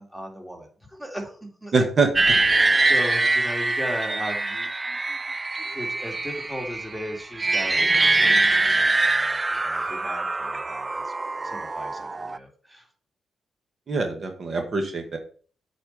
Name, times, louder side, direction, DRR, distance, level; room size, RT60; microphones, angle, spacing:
voice 1, 0.0-1.7 2.5-5.2 5.6-11.1 11.4-12.9, equal, 5° right, 1 dB, 2.3 m, -37 dB
voice 2, 1.7-2.1 13.9-15.2, right 4 dB, 50° right, 4 dB, 1.5 m, -23 dB
sound 1, 2.2-12.4, right 2 dB, 25° right, 0.3 m, -23 dB
8.2 x 4.4 x 5.3 m, 0.43 s
cardioid pair, 70°, 0 cm